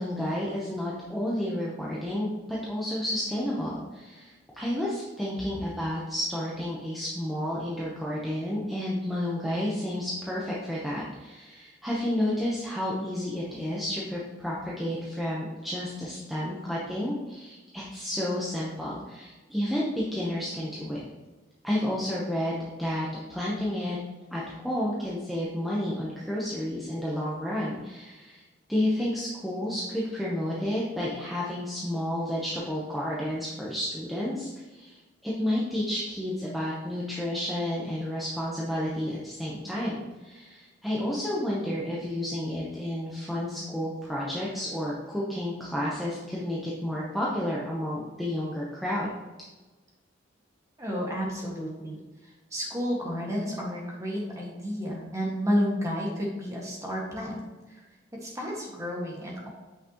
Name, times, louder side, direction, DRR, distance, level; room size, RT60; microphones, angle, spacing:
voice 1, 0.0-21.0 21.6-24.0 24.3-28.4 28.7-49.1, left 1 dB, ahead, -7 dB, 0.9 m, -31 dB
voice 2, 50.8-57.4 57.7-57.8 58.2-59.5, equal, 15° right, -3 dB, 1.7 m, -31 dB
8.5 x 5.9 x 3.0 m, 1.2 s
head